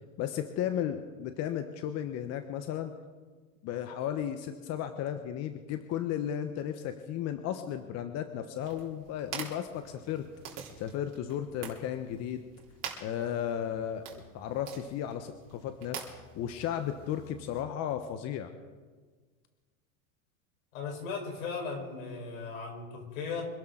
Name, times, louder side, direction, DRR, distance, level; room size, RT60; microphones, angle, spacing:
voice 1, 0.2-2.9 3.6-10.2 10.5-12.4 13.0-18.5, left 10 dB, 40° left, 8 dB, 1.1 m, -34 dB
sound 1, 8.6-17.6, right 7 dB, 40° right, 3.8 m, -46 dB
voice 2, 20.7-23.5, left 5 dB, 80° left, 2 dB, 5.0 m, -37 dB
26.0 x 12.0 x 3.9 m, 1.4 s
supercardioid pair, 125°, 40 cm